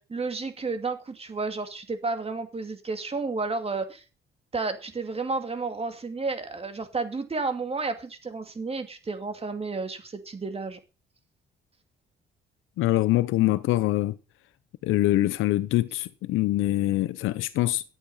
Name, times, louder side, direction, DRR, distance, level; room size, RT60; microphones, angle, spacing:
voice 1, 0.0-4.0 4.5-10.8, right 3 dB, 30° right, 2.4 m, -31 dB
voice 2, 12.8-14.1 14.8-17.8, left 16 dB, 90° left, 0.7 m, -24 dB
11.5 x 8.5 x 5.6 m
cardioid pair, 90°, 20 cm